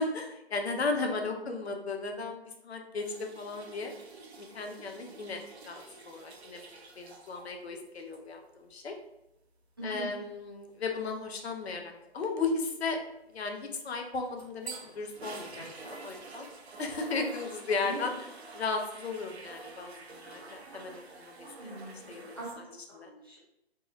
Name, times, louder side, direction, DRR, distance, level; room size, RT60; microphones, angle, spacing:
voice 1, 0.0-3.9 4.4-8.9 9.8-13.0 13.3-16.5 16.8-18.1 18.5-22.2 22.9-23.1, left 3 dB, 75° left, 4 dB, 0.5 m, -35 dB
sound 1, 3.0-7.5 7.9-8.2 14.0-22.5, right 3 dB, 80° right, 0.6 m, -48 dB
voice 2, 9.8-10.1 17.8-18.1 21.6-22.1 22.3-23.4, right 1 dB, 25° right, -7 dB, 0.3 m, -42 dB
2.6 x 2.0 x 2.5 m, 0.88 s
figure-of-eight pair, 145°, 32 cm